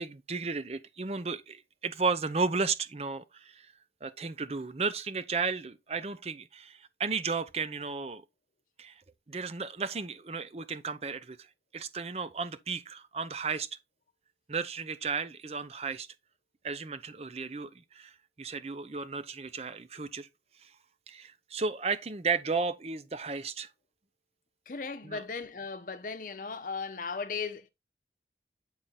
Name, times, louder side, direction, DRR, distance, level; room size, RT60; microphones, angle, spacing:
voice 1, 0.0-3.7 4.0-8.2 8.8-9.0 9.3-11.5 11.7-13.7 14.5-16.1 16.6-18.1 18.4-20.3 20.6-20.7 21.1-23.7 25.0-25.2, right 4 dB, 35° right, 0.6 m, -34 dB
voice 2, 24.7-27.7, left 5 dB, 50° left, 0.8 m, -37 dB
8.8 x 3.8 x 4.0 m
head